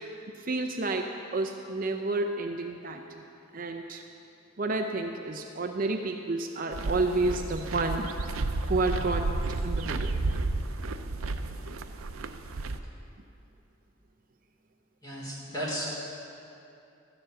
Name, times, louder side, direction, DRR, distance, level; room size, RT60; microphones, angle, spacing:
voice 1, 0.4-3.0 3.5-4.0 4.6-8.1 8.7-9.3 9.6-10.2, right 2 dB, 40° right, 4 dB, 0.5 m, -30 dB
sound 1, 6.7-12.8, right 2 dB, 85° right, 0.6 m, -32 dB
voice 2, 15.0-16.1, equal, 20° left, -6 dB, 3.4 m, -34 dB
13.0 x 7.1 x 8.0 m, 2.7 s
head